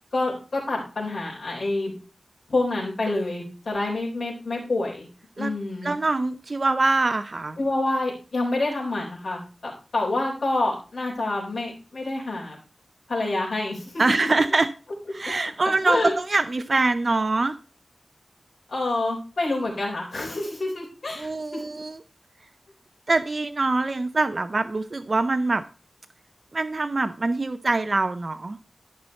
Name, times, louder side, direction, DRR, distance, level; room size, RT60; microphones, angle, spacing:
voice 1, 0.1-1.9 2.5-5.1 5.4-5.9 7.6-12.6 13.1-13.9 14.2-14.3 15.8-16.1 18.7-21.6, left 2 dB, 70° left, -4 dB, 3.9 m, -27 dB
voice 2, 5.8-7.6 14.0-14.7 15.1-17.6 21.2-22.0 23.1-25.6 26.5-28.6, right 3 dB, 45° right, 9 dB, 0.5 m, -24 dB
12.5 x 5.7 x 4.2 m, 0.36 s
wide cardioid pair, 90°, 0 cm